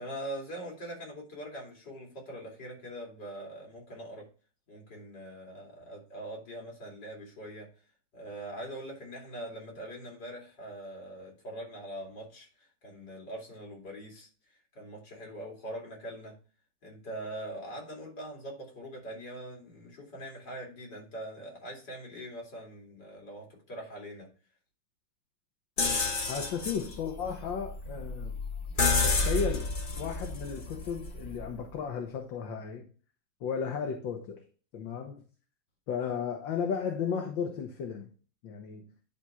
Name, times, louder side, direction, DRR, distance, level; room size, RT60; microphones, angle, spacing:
voice 1, 0.0-4.3 4.7-7.7 8.1-16.4 16.8-24.3, right 1 dB, 60° left, 3.3 m, -42 dB
sound 1, 25.8-31.6, left 3 dB, 35° left, 0.8 m, -31 dB
voice 2, 26.3-28.4 29.0-32.9 33.4-34.4 34.7-35.2 35.9-38.1 38.4-38.9, left 6 dB, 75° left, 1.8 m, -34 dB
10.5 x 3.6 x 4.3 m
omnidirectional pair, 2.1 m